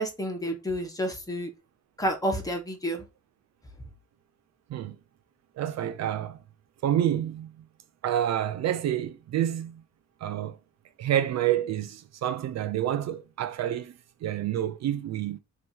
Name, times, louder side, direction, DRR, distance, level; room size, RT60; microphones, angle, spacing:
voice 1, 0.0-1.5 2.0-3.0, equal, 10° left, 1.4 m, -30 dB
voice 2, 5.6-6.4 6.8-7.5 8.0-9.8 10.2-10.6 11.0-13.9 14.2-15.4, right 11 dB, 60° right, 0.5 m, -28 dB
5.2 x 2.9 x 2.8 m
cardioid pair, 90°, 30 cm